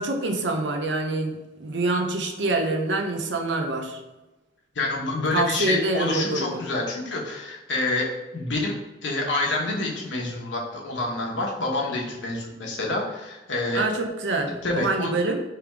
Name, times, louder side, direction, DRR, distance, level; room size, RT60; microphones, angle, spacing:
voice 1, 0.0-4.0 5.3-6.6 13.7-15.4, right 2 dB, 75° right, 4 dB, 0.7 m, -26 dB
voice 2, 4.7-8.1 8.3-13.9 14.5-15.1, left 2 dB, 85° left, -1 dB, 1.1 m, -27 dB
3.4 x 3.4 x 4.6 m, 1.1 s
head